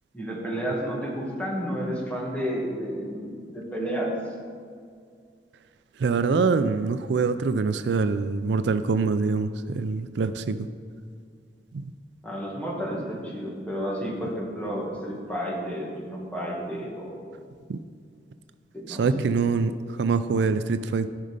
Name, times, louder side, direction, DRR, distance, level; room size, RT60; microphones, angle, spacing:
voice 1, 0.1-4.1 12.2-17.2 18.7-19.3, equal, 10° left, -3 dB, 1.9 m, -31 dB
voice 2, 6.0-10.7 11.7-11.8 17.7-17.8 18.9-21.1, right 4 dB, 70° right, 11 dB, 0.4 m, -24 dB
13.5 x 5.4 x 5.1 m, 2.2 s
head